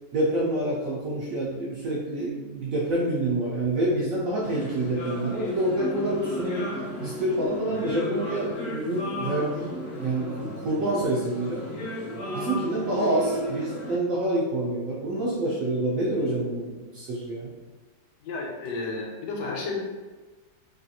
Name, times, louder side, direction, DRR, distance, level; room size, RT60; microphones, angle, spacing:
voice 1, 0.1-11.7 12.3-17.5, right 1 dB, 70° right, -5 dB, 0.8 m, -27 dB
sound 1, 4.4-14.0, left 1 dB, 60° left, 0.9 m, -34 dB
voice 2, 18.2-19.8, left 3 dB, 80° left, 0 dB, 1.2 m, -32 dB
3.0 x 2.4 x 2.7 m, 1.3 s
omnidirectional pair, 1.8 m